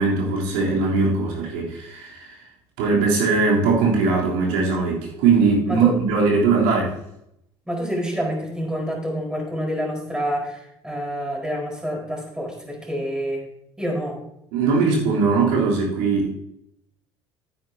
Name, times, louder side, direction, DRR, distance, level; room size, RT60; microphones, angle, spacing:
voice 1, 0.0-2.4 2.8-6.9 14.5-16.3, right 4 dB, 60° right, -3 dB, 3.5 m, -20 dB
voice 2, 7.7-13.4 13.8-14.2, equal, 5° right, -1 dB, 4.7 m, -27 dB
14.0 x 9.5 x 2.8 m, 0.78 s
figure-of-eight pair, 60°, 14 cm